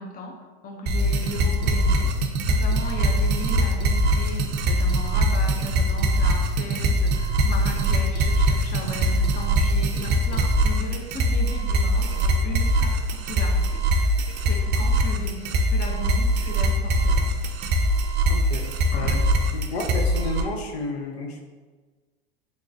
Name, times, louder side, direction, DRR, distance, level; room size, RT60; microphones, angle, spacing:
voice 1, 0.0-17.3 18.9-19.1, left 2 dB, 30° left, 3 dB, 0.5 m, -37 dB
sound 1, 0.9-20.4, right 1 dB, 35° right, 0.4 m, -22 dB
voice 2, 18.3-19.2 19.5-21.4, left 3 dB, 85° left, 3 dB, 0.7 m, -31 dB
3.5 x 3.3 x 2.6 m, 1.3 s
hypercardioid pair, 100°, 30 cm